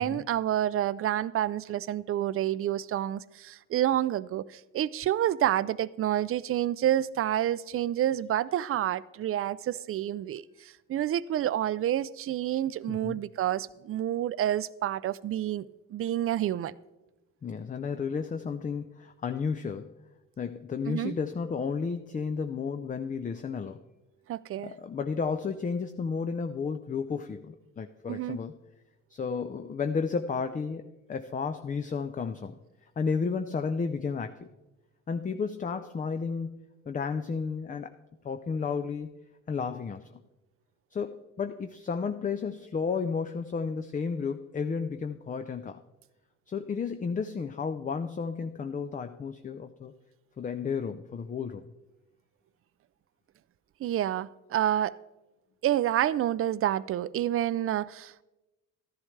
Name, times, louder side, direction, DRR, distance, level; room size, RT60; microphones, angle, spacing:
voice 1, 0.0-15.7 15.9-16.7 20.9-21.2 24.3-24.7 28.1-28.4 53.8-55.0 55.6-58.2, right 12 dB, 50° right, 0.4 m, -29 dB
voice 2, 12.9-13.2 17.4-19.9 20.4-23.8 24.6-28.6 29.1-30.8 31.1-32.6 33.0-34.5 35.1-37.9 38.2-39.1 39.5-40.1 40.9-45.8 46.5-49.9 50.4-51.7, left 5 dB, 25° left, 0.5 m, -32 dB
13.0 x 11.0 x 3.2 m
cardioid pair, 90°, 30 cm